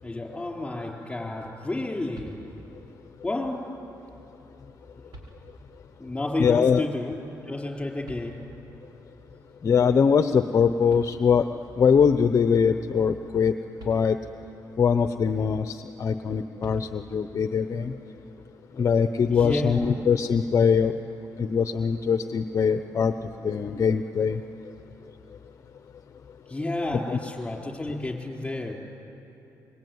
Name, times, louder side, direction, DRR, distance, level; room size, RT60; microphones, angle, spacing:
voice 1, 0.0-2.4 3.2-3.7 6.0-7.2 7.5-8.4 19.3-20.0 26.5-28.7, left 2 dB, 15° left, 0 dB, 4.6 m, -31 dB
sound 1, 2.1-2.9 4.4-4.5 5.1-5.9 8.0-8.8 10.6-10.7 10.9-11.7 13.4-13.5 13.8-14.5 16.6-17.4 19.4-20.1, right 1 dB, 70° right, 5.8 m, -47 dB
voice 2, 6.4-6.8 9.6-11.5 11.8-13.5 13.9-14.2 14.8-17.9 18.8-20.9 21.4-23.1 23.4-24.4 27.1-27.2, left 6 dB, 45° left, 9 dB, 0.8 m, -22 dB
25.0 x 23.0 x 9.5 m, 2.9 s
cardioid pair, 110°, 7 cm